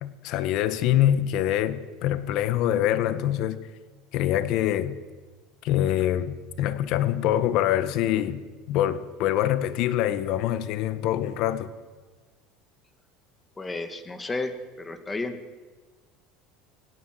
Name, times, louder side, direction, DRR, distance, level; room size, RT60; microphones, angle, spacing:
voice 1, 0.0-3.7 4.1-5.0 5.6-8.4 8.7-11.7, left 12 dB, 60° left, 1.6 m, -25 dB
voice 2, 13.6-14.5 14.8-15.4, left 3 dB, 15° left, 2.2 m, -32 dB
27.0 x 17.5 x 8.0 m
supercardioid pair, 125°, 0 cm